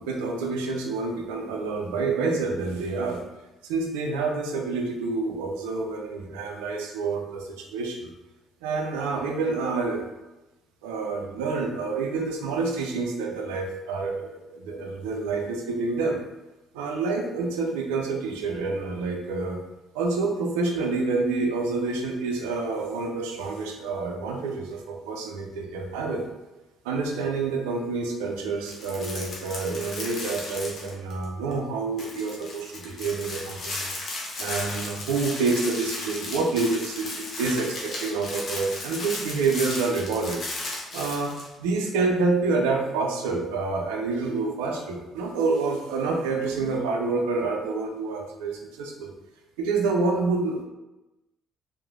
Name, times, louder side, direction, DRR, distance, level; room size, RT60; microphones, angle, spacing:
voice 1, 0.0-3.2 3.6-8.1 8.6-10.1 10.8-16.2 16.7-19.6 19.9-26.2 26.8-33.9 34.4-40.4 40.9-41.3 41.6-49.1 49.6-50.6, right 3 dB, 85° right, 2 dB, 0.3 m, -28 dB
sound 1, 28.6-31.2 31.5-31.6 32.0-41.5, left 2 dB, 55° left, 0.8 m, -35 dB
2.9 x 2.1 x 2.4 m, 1.0 s
hypercardioid pair, 55°, 0 cm